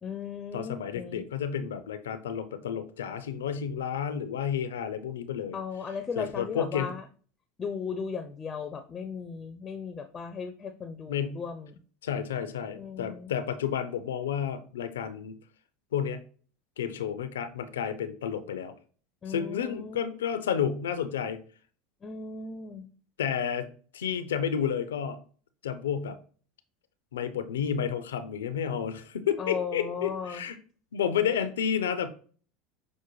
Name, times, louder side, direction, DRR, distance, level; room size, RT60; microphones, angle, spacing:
voice 1, 0.0-1.2 5.5-7.0 7.6-11.8 12.8-13.3 19.2-20.0 22.0-22.9 29.4-30.4, left 6 dB, 30° left, 9 dB, 0.5 m, -36 dB
voice 2, 0.5-5.6 6.2-6.9 11.1-11.4 12.0-15.3 15.9-16.2 16.8-18.7 19.3-21.4 23.2-23.7 23.9-25.2 25.6-26.2 27.1-30.6 30.9-32.1, left 8 dB, 85° left, 11 dB, 0.4 m, -31 dB
6.1 x 2.1 x 3.0 m, 0.42 s
hypercardioid pair, 90°, 0 cm